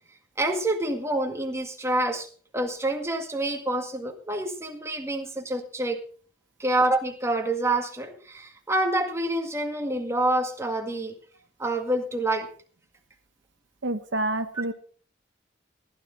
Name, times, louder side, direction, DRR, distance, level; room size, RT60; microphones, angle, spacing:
voice 1, 0.4-2.3 2.5-6.0 6.6-11.2 11.6-12.5, right 1 dB, 15° right, 4 dB, 1.9 m, -27 dB
voice 2, 13.8-14.7, right 1 dB, 80° right, 9 dB, 1.2 m, -28 dB
16.0 x 12.5 x 3.8 m, 0.42 s
head